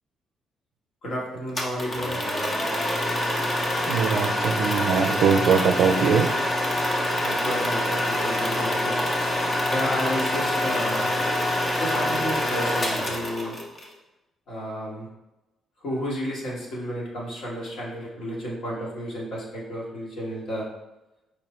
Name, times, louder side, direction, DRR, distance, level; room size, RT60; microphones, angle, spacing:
voice 1, 1.0-2.2 7.2-9.0 9.7-11.1 11.8-13.6 14.5-15.1 15.8-20.6, equal, 70° left, -4 dB, 1.5 m, -31 dB
sound 1, 1.6-13.9, left 1 dB, 30° left, 0.8 m, -26 dB
voice 2, 3.9-6.3, right 6 dB, 75° right, 7 dB, 0.4 m, -21 dB
5.1 x 2.0 x 4.2 m, 0.98 s
cardioid pair, 90°, 0 cm